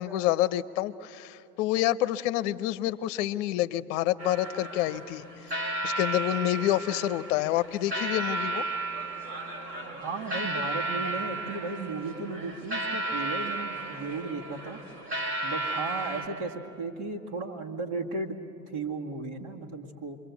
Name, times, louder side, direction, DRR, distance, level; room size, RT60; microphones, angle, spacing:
voice 1, 0.0-5.2 5.8-8.6, left 14 dB, 45° left, 16 dB, 0.9 m, -28 dB
sound 1, 4.2-16.3, right 2 dB, 85° right, 4.6 m, -34 dB
voice 2, 9.8-14.8 15.4-18.4 18.7-20.2, right 3 dB, 50° right, 0 dB, 2.1 m, -35 dB
27.5 x 23.5 x 8.3 m, 2.9 s
figure-of-eight pair, 90°, 50 cm